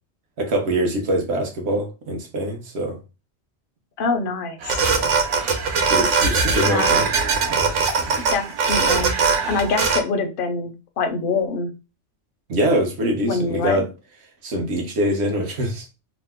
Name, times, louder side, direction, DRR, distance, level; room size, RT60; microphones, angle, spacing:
voice 1, 0.4-3.0 5.0-5.1 5.9-7.1 7.5-7.6 12.5-13.9 14.4-15.9, right 1 dB, 65° right, 1.0 m, -23 dB
voice 2, 4.0-4.6 6.6-7.0 8.3-9.2 9.4-11.7 13.3-13.8, left 4 dB, 60° left, 0.6 m, -25 dB
sound 1, 4.6-10.0, right 5 dB, 90° right, 1.0 m, -21 dB
2.9 x 2.0 x 3.4 m
omnidirectional pair, 1.2 m